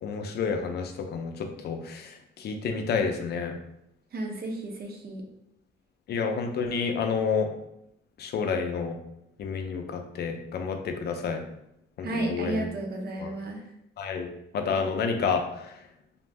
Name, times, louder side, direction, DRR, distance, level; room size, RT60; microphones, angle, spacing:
voice 1, 0.0-3.5 6.1-7.5 8.2-9.0 9.4-11.4 12.0-12.7 13.2-13.3 14.0-15.7, left 5 dB, 55° left, 5 dB, 0.5 m, -29 dB
voice 2, 4.1-5.2 12.0-13.6, right 2 dB, 50° right, 1 dB, 0.7 m, -33 dB
2.5 x 2.0 x 3.3 m, 0.79 s
cardioid pair, 90°, 20 cm